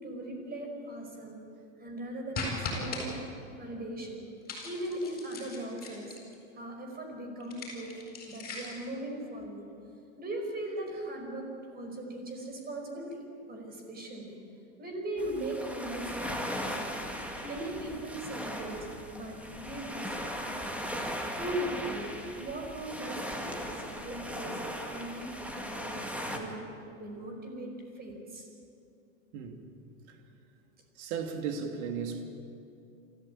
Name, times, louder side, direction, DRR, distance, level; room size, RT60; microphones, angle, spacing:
voice 1, 0.0-1.4 1.8-3.2 3.6-4.2 4.6-6.2 6.5-9.7 10.2-13.2 13.5-14.3 14.8-17.0 17.4-20.9 21.4-22.1 22.4-24.6 24.9-25.9 26.3-26.7 27.0-28.5, right 1 dB, 25° right, 2 dB, 5.2 m, -39 dB
sound 1, 2.3-3.0 4.5-6.3 7.4-8.9, left 3 dB, 25° left, 7.4 m, -38 dB
sound 2, 15.2-26.4, equal, 5° right, 2.1 m, -38 dB
voice 2, 31.0-32.2, right 6 dB, 60° right, 5 dB, 2.9 m, -35 dB
27.0 x 14.5 x 8.9 m, 2.7 s
supercardioid pair, 125°, 39 cm